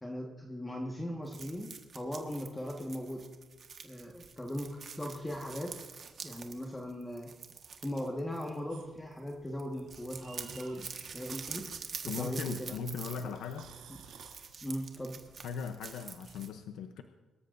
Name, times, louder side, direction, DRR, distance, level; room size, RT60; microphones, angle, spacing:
voice 1, 0.0-3.3 3.8-5.8 6.2-7.3 7.8-10.9 11.1-12.8 13.2-13.3 14.6-15.2, equal, 10° left, 1 dB, 1.6 m, -39 dB
sound 1, 1.3-8.9 9.2-9.3 9.6-16.5, right 6 dB, 50° right, 1.5 m, -46 dB
sound 2, 8.7-15.4, right 7 dB, 85° right, 2.6 m, -58 dB
voice 2, 12.1-13.7 15.4-17.0, left 6 dB, 85° left, 7 dB, 0.7 m, -38 dB
24.5 x 13.5 x 2.6 m, 1.3 s
cardioid pair, 90°, 0 cm